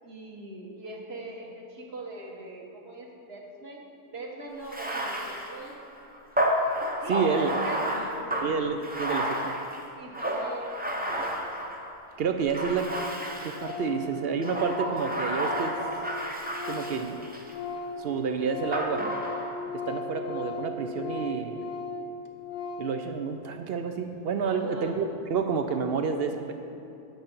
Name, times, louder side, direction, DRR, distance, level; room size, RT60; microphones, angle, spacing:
voice 1, 0.0-3.9 4.1-5.8 7.0-8.5 9.9-11.3 24.5-25.0, right 2 dB, 45° right, -1 dB, 1.5 m, -42 dB
Bathtub (filling or washing), 4.6-12.0 12.5-13.8 14.4-17.6 18.7-19.7, equal, 15° right, 0.4 m, -31 dB
voice 2, 7.1-7.5 8.4-9.5 12.2-12.9 13.4-15.8 16.7-17.2 18.0-19.0 19.9-21.6 22.8-26.5, right 5 dB, 70° right, 6 dB, 0.5 m, -29 dB
Organ, 11.9-12.0 12.2-12.3 12.5-12.6 12.9-13.2 13.5-17.1 17.4-23.0, left 3 dB, 60° left, 1.0 m, -37 dB
9.4 x 6.8 x 5.3 m, 2.8 s
omnidirectional pair, 1.6 m